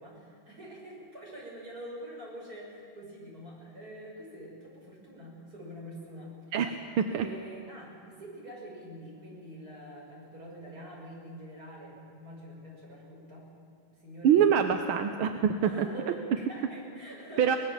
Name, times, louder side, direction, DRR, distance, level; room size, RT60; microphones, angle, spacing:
voice 1, 0.0-6.6 7.1-13.5 13.8-15.1 15.6-17.6, equal, 45° right, -3 dB, 6.6 m, -46 dB
voice 2, 6.5-7.3 14.2-15.9 17.4-17.6, right 8 dB, 85° right, 6 dB, 1.8 m, -25 dB
24.5 x 19.5 x 7.3 m, 2.1 s
omnidirectional pair, 2.3 m